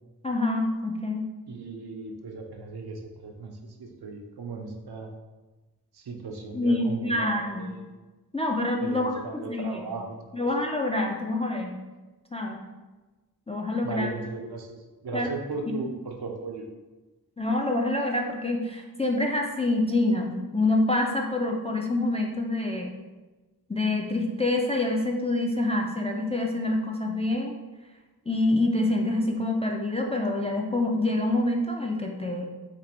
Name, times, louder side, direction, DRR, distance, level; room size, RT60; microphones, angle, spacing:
voice 1, 0.2-1.3 6.5-7.7 8.3-9.7 10.3-11.7 12.3-12.6 13.5-14.1 15.1-15.3 17.4-22.9 23.7-27.5 28.3-32.5, left 2 dB, 15° left, 0 dB, 0.3 m, -26 dB
voice 2, 1.5-3.5 3.8-5.1 5.9-7.8 8.8-10.5 13.8-16.7, right 4 dB, 75° right, 2 dB, 0.5 m, -37 dB
2.6 x 2.5 x 4.1 m, 1.2 s
wide cardioid pair, 45°, 39 cm